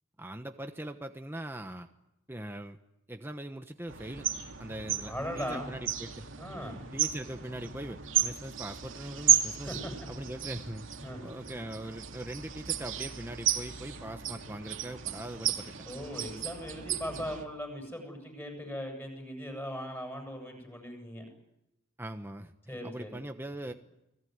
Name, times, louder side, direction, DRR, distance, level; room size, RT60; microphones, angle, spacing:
voice 1, 0.2-1.9 2.3-2.8 3.1-4.3 4.6-6.3 6.6-9.7 10.1-15.7 22.0-23.7, right 1 dB, 10° right, 6 dB, 1.1 m, -41 dB
sound 1, 3.9-17.4, right 9 dB, 70° right, 2.7 m, -33 dB
voice 2, 5.0-5.7 6.4-6.8 9.7-9.9 11.0-11.2 15.9-21.3 22.7-23.2, equal, 10° left, 3 dB, 8.0 m, -39 dB
29.5 x 20.5 x 9.6 m, 0.87 s
head